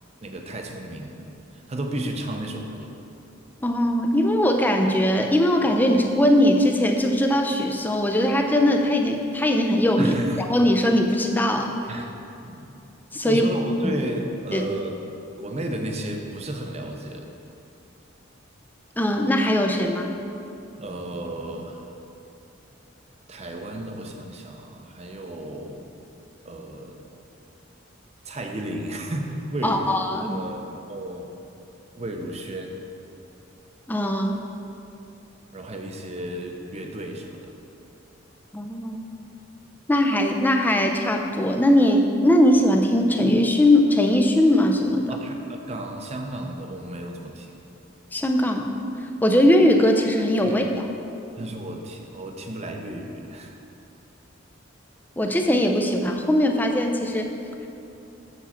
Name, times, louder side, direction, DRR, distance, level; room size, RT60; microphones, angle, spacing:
voice 1, 0.2-1.2 1.5-2.9 10.0-10.4 11.9-12.1 12.4-12.7 13.2-14.9 15.4-17.3 20.7-21.9 23.3-25.8 26.4-27.0 28.2-30.0 30.2-31.4 32.0-32.8 35.5-37.6 45.1-47.6 50.4-50.7 51.4-53.5, right 1 dB, 35° right, 3 dB, 0.7 m, -33 dB
voice 2, 3.6-10.2 10.5-11.8 13.1-13.4 14.5-14.7 19.0-20.2 29.6-30.4 33.9-34.4 38.5-39.2 39.9-45.1 48.1-48.7 49.2-50.8 55.2-57.3, left 1 dB, 10° left, 3 dB, 0.5 m, -20 dB
7.1 x 7.0 x 4.3 m, 2.8 s
head